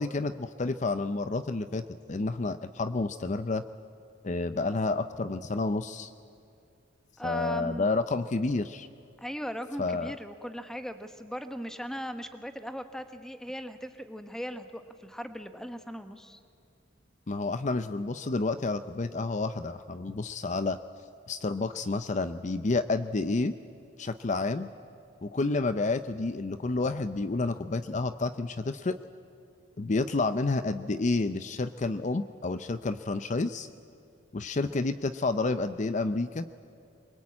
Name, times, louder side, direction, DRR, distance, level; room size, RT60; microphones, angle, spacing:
voice 1, 0.0-3.6 4.2-6.1 7.2-8.9 9.8-10.2 17.3-20.8 21.3-23.5 24.0-24.7 25.2-29.0 29.8-33.7 34.3-36.5, left 3 dB, 40° left, 12 dB, 0.5 m, -30 dB
voice 2, 7.2-7.9 9.2-16.4, equal, 5° left, 8 dB, 1.2 m, -38 dB
24.0 x 22.5 x 8.7 m, 2.6 s
head